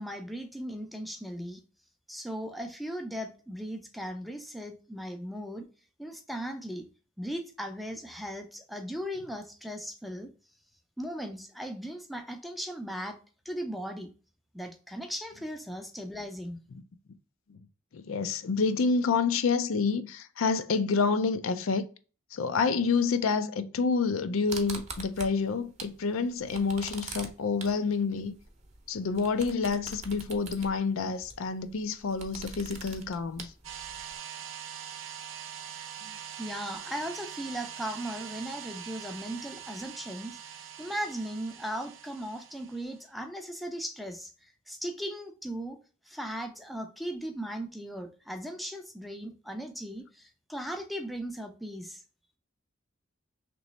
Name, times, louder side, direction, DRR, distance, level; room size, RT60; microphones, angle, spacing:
voice 1, 0.0-1.6 2.1-5.7 6.0-6.9 7.2-10.3 11.0-13.2 13.5-14.1 14.5-16.6 36.4-45.8 46.1-52.0, equal, ahead, 0.4 m, -37 dB
voice 2, 17.9-21.8 22.3-28.3 28.9-33.5, left 4 dB, 85° left, 0.5 m, -28 dB
sound 1, 24.5-26.0 26.3-34.1, right 4 dB, 35° right, 0.7 m, -43 dB
sound 2, 33.6-43.0, right 9 dB, 85° right, 0.7 m, -43 dB
3.1 x 3.0 x 3.9 m
head